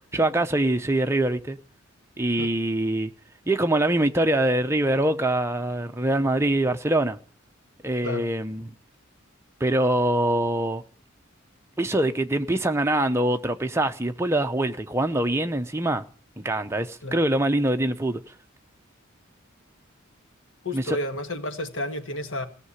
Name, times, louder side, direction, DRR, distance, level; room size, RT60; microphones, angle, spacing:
voice 1, 0.1-1.6 2.2-3.1 3.5-7.2 7.8-8.7 9.6-10.8 11.8-16.0 16.4-18.2 20.7-21.0, right 1 dB, 15° right, 0.7 m, -24 dB
voice 2, 20.6-22.5, left 1 dB, 70° left, 1.6 m, -31 dB
17.5 x 6.7 x 9.7 m
head